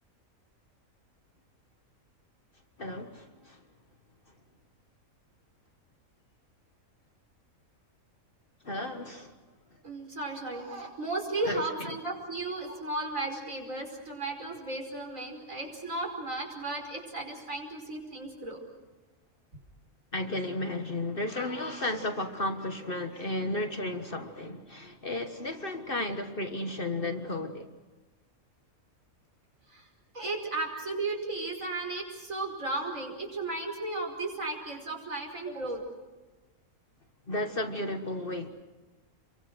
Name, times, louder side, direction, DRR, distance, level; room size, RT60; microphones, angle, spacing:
voice 1, 2.8-3.6 8.6-9.3 11.4-12.0 20.1-27.7 37.3-38.5, left 1 dB, 40° left, 1.6 m, -33 dB
voice 2, 9.8-18.6 29.7-29.9 30.1-35.8, right 2 dB, 65° right, 5.6 m, -35 dB
29.5 x 24.0 x 6.3 m
omnidirectional pair, 1.5 m